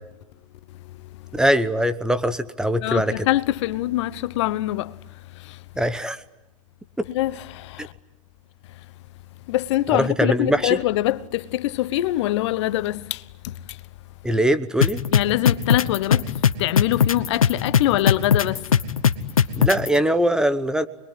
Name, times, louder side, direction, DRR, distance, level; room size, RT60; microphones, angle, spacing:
voice 1, 1.3-3.1 5.8-6.2 7.0-7.1 7.8-7.9 10.0-10.8 14.2-15.0 19.6-20.9, equal, 5° right, 1.0 m, -21 dB
voice 2, 2.8-4.9 7.1-7.9 9.5-13.2 15.1-16.2 16.6-18.6, left 15 dB, 55° left, 1.0 m, -23 dB
sound 1, 14.8-19.9, left 7 dB, 85° left, 1.2 m, -18 dB
26.5 x 22.0 x 9.9 m
hypercardioid pair, 110°, 18 cm